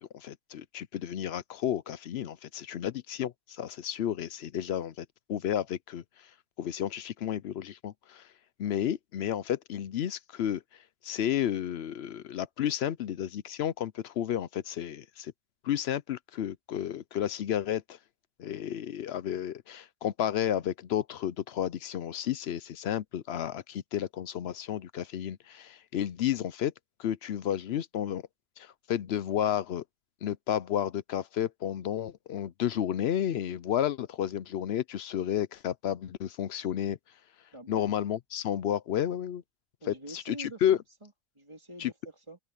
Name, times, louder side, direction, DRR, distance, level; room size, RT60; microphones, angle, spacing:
voice 1, 0.0-6.0 6.6-8.3 8.6-10.6 11.0-15.3 15.6-18.0 18.4-26.7 27.0-28.2 28.6-29.8 30.2-37.0 37.7-39.4 39.8-40.8 41.8-41.9, left 10 dB, 60° left, 0.7 m, -32 dB
voice 2, 37.5-37.8 39.8-41.1 41.4-42.4, right 1 dB, 20° right, 3.6 m, -46 dB
omnidirectional pair, 1.4 m